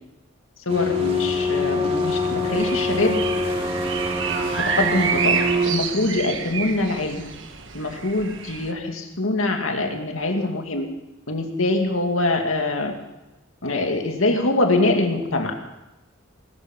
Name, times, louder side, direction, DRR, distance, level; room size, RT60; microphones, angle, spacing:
voice 1, 0.7-3.2 4.5-7.3 7.7-10.8 11.3-12.9 13.6-15.5, left 2 dB, 90° left, 4 dB, 2.3 m, -24 dB
sound 1, 0.7-5.7, left 2 dB, 35° right, 3.7 m, -24 dB
sound 2, 2.6-8.7, right 6 dB, 65° right, 1.4 m, -29 dB
20.0 x 13.0 x 5.4 m, 0.99 s
head